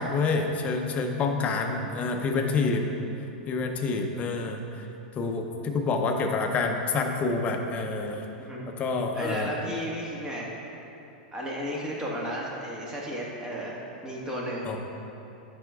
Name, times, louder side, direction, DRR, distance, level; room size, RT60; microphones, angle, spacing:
voice 1, 0.0-2.9 3.5-4.9 5.2-8.2 8.8-9.5 14.6-14.8, left 4 dB, 30° left, 3 dB, 0.7 m, -27 dB
voice 2, 9.1-10.5 11.3-14.7, equal, 15° right, -4 dB, 1.5 m, -33 dB
10.5 x 5.1 x 2.4 m, 2.9 s
hypercardioid pair, 115°, 5 cm